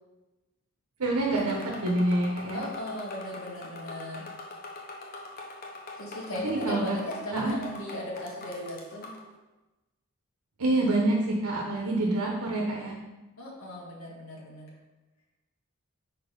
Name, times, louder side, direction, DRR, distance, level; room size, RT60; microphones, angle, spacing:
voice 1, 1.0-1.6 1.8-2.6 6.4-7.0 7.3-7.6 10.6-12.9, right 2 dB, 90° right, -1 dB, 0.9 m, -26 dB
sound 1, 1.4-9.3, left 2 dB, 40° left, 0.8 m, -43 dB
voice 2, 2.5-4.3 6.0-9.1 13.4-14.7, left 1 dB, 70° left, -3 dB, 1.8 m, -37 dB
5.4 x 4.3 x 5.2 m, 1.1 s
head